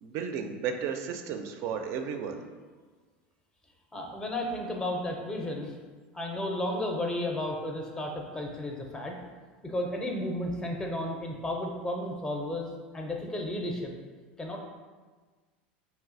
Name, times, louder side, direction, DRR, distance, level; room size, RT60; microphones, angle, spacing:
voice 1, 0.0-2.4, right 7 dB, 55° right, 6 dB, 0.4 m, -33 dB
voice 2, 3.9-5.7 6.1-9.2 9.6-13.9 14.4-14.6, left 1 dB, 10° left, 1 dB, 0.5 m, -33 dB
3.3 x 2.7 x 2.5 m, 1.4 s
hypercardioid pair, 90°, 6 cm